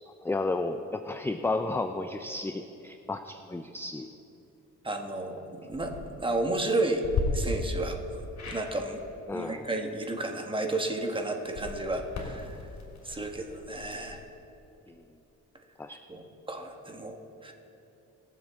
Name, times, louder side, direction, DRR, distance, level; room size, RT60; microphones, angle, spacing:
voice 1, 0.2-4.1 9.3-9.7 15.8-16.0, left 2 dB, 10° left, 7 dB, 0.4 m, -32 dB
voice 2, 4.8-7.0 7.3-8.0 8.5-9.0 9.3-12.5 13.0-14.2 16.1-17.5, right 2 dB, 15° right, 3 dB, 1.4 m, -32 dB
sound 1, 5.6-6.0 7.0-7.2 8.4-8.7 11.4-14.2, left 6 dB, 60° left, 2.8 m, -37 dB
22.0 x 7.4 x 3.6 m, 2.9 s
cardioid pair, 90°, 30 cm